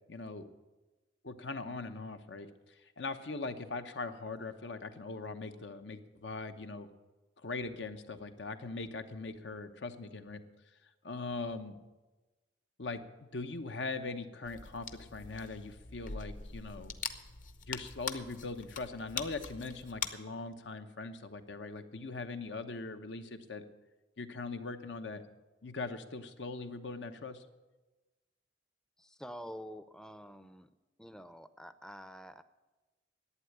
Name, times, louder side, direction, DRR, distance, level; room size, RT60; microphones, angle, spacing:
voice 1, 0.1-0.5 1.2-2.5 3.0-6.9 7.4-10.4 11.0-11.8 12.8-13.0 13.3-16.9 17.7-23.6 24.2-25.2 25.6-27.4, left 3 dB, 80° left, 8 dB, 0.9 m, -41 dB
sound 1, 14.4-20.1, left 6 dB, 45° left, 0.8 m, -43 dB
voice 2, 29.0-30.7 31.0-32.4, equal, 5° left, 12 dB, 0.5 m, -48 dB
11.5 x 8.8 x 9.8 m, 1.2 s
head